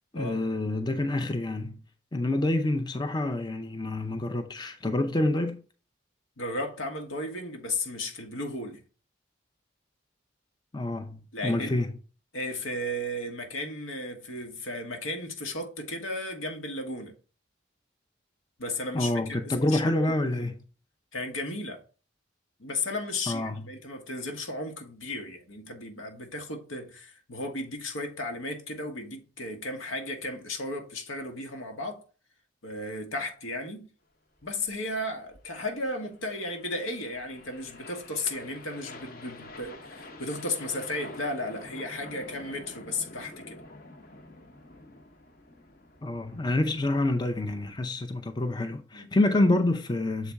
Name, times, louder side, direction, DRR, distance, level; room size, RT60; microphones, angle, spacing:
voice 1, 0.1-1.8 2.1-5.6 10.7-11.9 18.9-20.5 23.3-23.7 46.0-50.3, left 2 dB, 20° left, 0.5 m, -27 dB
voice 2, 6.4-8.8 11.3-11.8 12.3-17.1 18.6-20.3 21.1-21.8 22.6-32.0 32.6-33.9 34.4-43.6 48.9-49.1, left 2 dB, 90° left, 1.5 m, -35 dB
sound 1, 34.4-47.7, left 2 dB, 45° left, 0.9 m, -48 dB
7.0 x 4.2 x 3.5 m
head